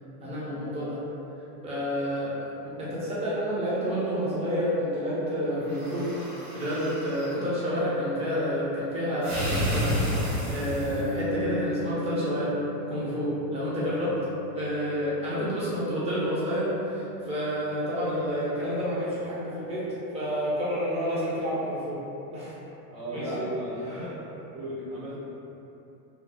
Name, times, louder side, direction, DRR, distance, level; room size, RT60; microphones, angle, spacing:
voice 1, 0.2-1.0 1.6-6.1 6.5-12.6 12.9-14.1 14.5-19.9 20.1-22.0 22.3-22.5 23.1-23.5 23.8-24.0, equal, 15° right, -9 dB, 0.6 m, -29 dB
sound 1, 5.6-7.4 9.2-11.2, equal, 65° right, 1.2 m, -30 dB
sound 2, 10.9-20.6, left 2 dB, 30° left, 0.4 m, -39 dB
voice 2, 22.9-25.2, equal, 45° right, -13 dB, 0.9 m, -36 dB
2.9 x 2.0 x 2.6 m, 2.8 s
hypercardioid pair, 115°, 50 cm